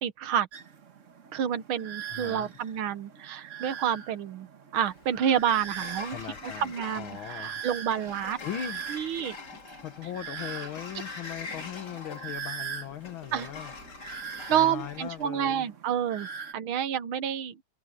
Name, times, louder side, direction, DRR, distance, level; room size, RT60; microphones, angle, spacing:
voice 1, 0.0-0.5 1.3-4.5 4.7-6.2 6.4-8.4 8.9-9.4 13.3-13.5 14.5-16.3 16.5-17.6, right 9 dB, 80° right, 1.9 m, -29 dB
sound 1, 0.5-16.5, right 7 dB, 45° right, 1.3 m, -42 dB
voice 2, 2.1-2.5 6.1-7.5 8.4-8.8 9.8-13.7 14.5-15.7, left 10 dB, 75° left, 2.0 m, -39 dB
Sliding door, 4.7-15.3, left 4 dB, 50° left, 3.2 m, -44 dB
open air
omnidirectional pair, 2.3 m